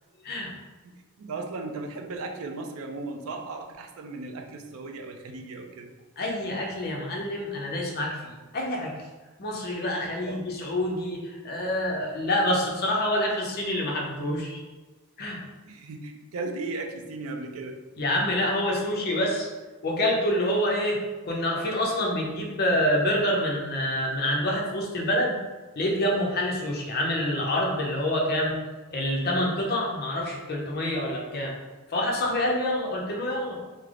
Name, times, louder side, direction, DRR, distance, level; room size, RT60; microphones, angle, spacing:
voice 1, 0.8-5.9 10.3-10.7 15.6-17.8, right 3 dB, 65° right, 3 dB, 0.4 m, -36 dB
voice 2, 6.2-9.0 9.4-14.6 15.2-15.4 18.0-19.5 19.8-21.0 21.3-25.4 25.8-28.6 28.9-31.5 31.9-33.6, left 1 dB, 45° left, -1 dB, 0.6 m, -27 dB
3.2 x 2.0 x 3.6 m, 1.3 s
head